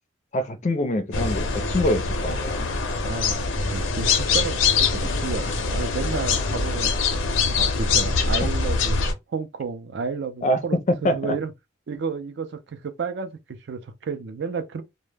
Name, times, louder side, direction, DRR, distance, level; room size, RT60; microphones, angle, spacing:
voice 1, 0.3-2.7 10.4-10.6 11.0-11.4, left 1 dB, 40° left, 0.4 m, -25 dB
sound 1, 1.1-9.1, left 4 dB, 85° left, 0.5 m, -23 dB
voice 2, 3.0-7.0 7.6-11.5 11.9-14.8, right 5 dB, 60° right, 0.4 m, -32 dB
2.1 x 2.1 x 3.2 m
head